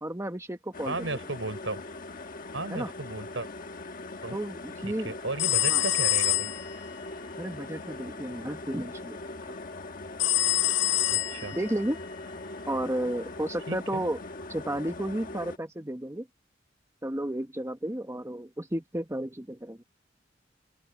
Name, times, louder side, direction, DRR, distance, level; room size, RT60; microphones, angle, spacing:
voice 1, 0.0-1.2 2.7-2.9 4.3-5.1 5.7-5.8 7.4-9.2 11.5-12.0 12.7-14.2 14.5-16.3 17.0-19.8, right 1 dB, 15° right, 1.2 m, -32 dB
sound 1, 0.7-15.6, left 2 dB, 45° left, 1.3 m, -41 dB
voice 2, 0.8-1.8 2.5-3.5 4.2-4.4 4.8-6.5 11.1-11.6 13.7-14.0, right 2 dB, 85° right, 4.3 m, -35 dB
sound 2, 5.4-6.8 10.2-11.8, left 14 dB, 70° left, 1.3 m, -26 dB
open air
head